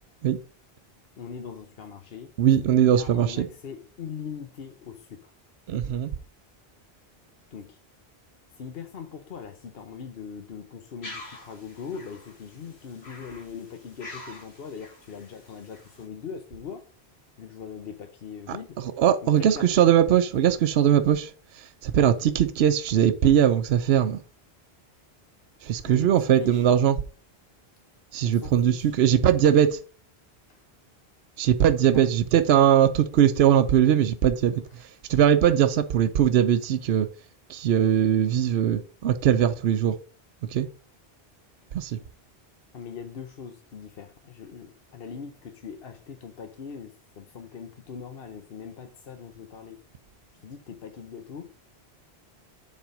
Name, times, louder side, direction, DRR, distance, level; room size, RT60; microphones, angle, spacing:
voice 1, 1.2-2.3 2.7-5.3 7.5-7.8 8.5-16.9 17.4-18.7 19.2-19.7 25.8-26.7 28.2-28.9 30.5-30.6 31.9-32.1 42.0-42.1 42.7-49.8 50.4-51.5, left 6 dB, 65° left, 1.0 m, -41 dB
voice 2, 2.4-3.5 5.7-6.1 18.5-24.2 25.6-27.0 28.1-29.8 31.4-37.1 37.5-40.0 40.5-40.7 41.7-42.0, right 10 dB, 80° right, 0.9 m, -21 dB
sound 1, 11.0-16.1, left 2 dB, 85° left, 2.2 m, -46 dB
7.4 x 4.2 x 5.1 m
omnidirectional pair, 1.1 m